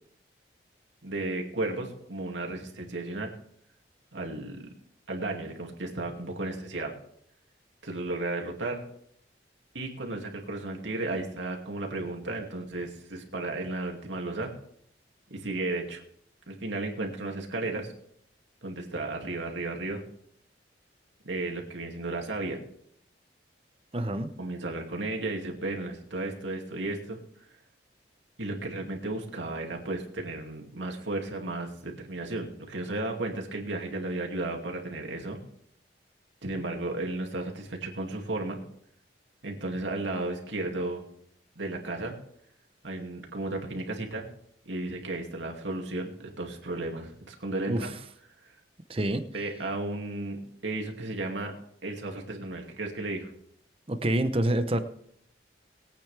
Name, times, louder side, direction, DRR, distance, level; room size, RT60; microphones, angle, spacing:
voice 1, 1.0-3.3 4.1-4.7 5.1-6.9 7.8-8.8 9.7-14.5 15.3-16.0 16.5-17.9 18.6-20.0 21.2-22.6 24.4-27.2 28.4-35.4 36.4-38.6 39.4-41.0 41.6-42.1 42.8-44.2 44.7-47.9 49.3-51.5 51.8-53.3, right 2 dB, 80° right, 1 dB, 2.5 m, -34 dB
voice 2, 23.9-24.3 47.7-47.9 48.9-49.2 53.9-54.8, right 1 dB, 30° right, 10 dB, 0.8 m, -27 dB
21.0 x 8.9 x 3.4 m, 0.68 s
head